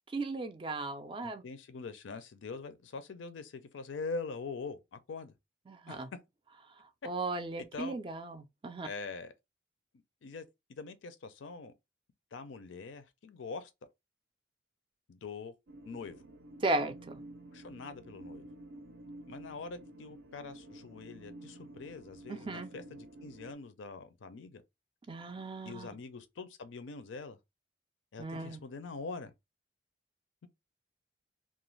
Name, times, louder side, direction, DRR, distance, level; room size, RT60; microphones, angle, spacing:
voice 1, 0.1-1.4 5.7-6.1 6.8-8.9 16.6-17.2 22.3-22.7 25.1-25.9 28.2-28.6, right 2 dB, 25° right, 0.3 m, -36 dB
voice 2, 1.2-5.3 5.9-6.0 7.6-8.0 8.8-9.3 10.2-11.7 12.3-13.7 15.1-15.5 15.9-16.2 17.5-18.5 19.3-24.6 25.7-27.4 28.1-29.3, left 4 dB, 80° left, 0.5 m, -43 dB
sound 1, 15.7-23.5, right 1 dB, 85° right, 0.5 m, -51 dB
2.4 x 2.2 x 3.1 m
head